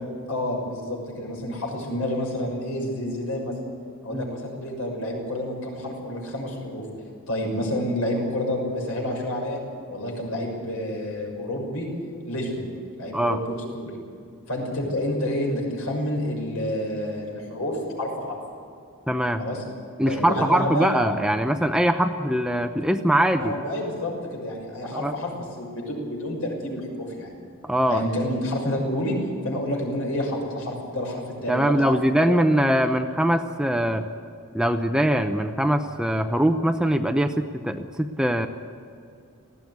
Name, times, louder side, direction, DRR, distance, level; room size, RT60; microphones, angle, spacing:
voice 1, 0.3-3.6 4.0-6.9 7.3-9.6 9.9-11.9 12.3-12.6 13.0-13.9 14.5-18.4 19.4-19.6 20.1-20.9 23.3-27.3 27.9-29.2 29.4-32.4, left 1 dB, 75° left, 0 dB, 6.3 m, -29 dB
voice 2, 19.1-19.4 20.0-23.5 24.9-25.1 27.6-28.0 31.5-34.1 34.5-38.5, equal, 5° right, 7 dB, 0.7 m, -22 dB
19.0 x 15.5 x 9.4 m, 2.4 s
head